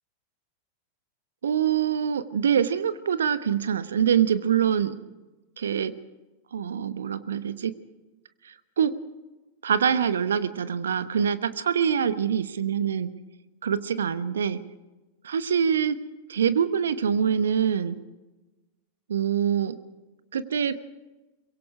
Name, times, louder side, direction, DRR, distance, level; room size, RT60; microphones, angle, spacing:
voice 1, 1.4-5.0 5.6-6.0 6.5-7.7 8.4-9.0 9.6-13.2 13.6-14.6 15.2-16.0 16.3-18.0 19.1-19.8 20.3-20.8, right 8 dB, 65° right, 14 dB, 1.1 m, -25 dB
24.0 x 22.5 x 4.8 m, 1.1 s
figure-of-eight pair, 90°, 0 cm